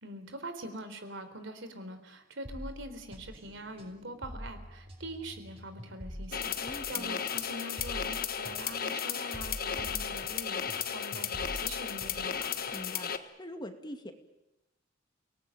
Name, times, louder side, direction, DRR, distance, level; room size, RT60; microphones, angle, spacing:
voice 1, 0.0-12.5, right 1 dB, 70° right, 9 dB, 3.9 m, -44 dB
sound 1, 2.4-10.8 11.1-13.0, equal, 30° right, 6.3 m, -46 dB
sound 2, 6.3-13.2, left 8 dB, 50° left, 1.5 m, -34 dB
voice 2, 6.6-7.2 12.7-14.1, left 1 dB, 25° left, 6 dB, 2.3 m, -43 dB
29.5 x 19.5 x 9.1 m, 0.96 s
head